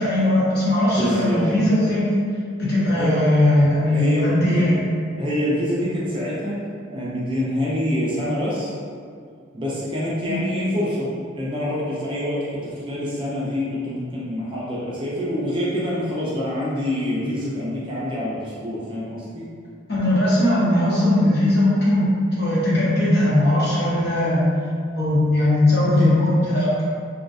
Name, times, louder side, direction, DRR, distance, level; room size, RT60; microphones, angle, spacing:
voice 1, 0.0-2.1 2.6-4.8 10.3-10.4 19.9-24.4 24.9-26.8, left 1 dB, 50° left, -8 dB, 0.7 m, -19 dB
voice 2, 0.9-1.6 3.0-3.1 3.9-4.6 5.2-6.6 6.9-8.7 9.5-11.1 11.3-19.4 25.9-26.1, equal, 25° right, -7 dB, 0.4 m, -26 dB
2.4 x 2.2 x 2.4 m, 2.2 s
head